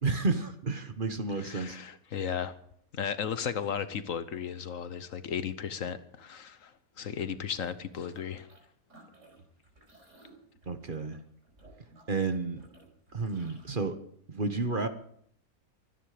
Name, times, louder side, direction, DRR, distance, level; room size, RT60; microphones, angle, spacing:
voice 1, 0.0-1.8 10.7-11.2 12.1-12.6 13.1-14.0 14.3-14.9, right 3 dB, 40° right, 1.3 m, -31 dB
voice 2, 1.4-2.5 2.9-8.5, left 7 dB, 65° left, 1.3 m, -35 dB
sound 1, 7.1-8.6 8.9-13.7, right 2 dB, 55° right, 5.1 m, -57 dB
24.5 x 10.0 x 5.0 m
omnidirectional pair, 1.5 m